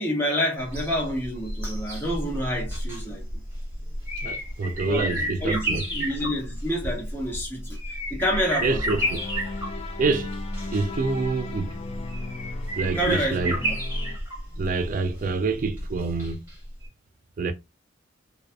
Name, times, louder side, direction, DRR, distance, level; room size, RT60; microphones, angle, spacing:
voice 1, 0.0-3.4 4.8-8.8 12.8-13.8, equal, 10° left, 1.1 m, -28 dB
sound 1, 0.6-16.5 16.8-16.9, equal, 10° right, 1.2 m, -31 dB
voice 2, 4.2-5.8 8.6-9.2 10.0-10.4 10.7-11.8 12.8-13.6 14.6-16.4 17.4-17.5, right 3 dB, 45° right, 0.3 m, -26 dB
sound 2, 8.8-14.2, left 4 dB, 30° left, 0.3 m, -37 dB
2.6 x 2.3 x 2.2 m
head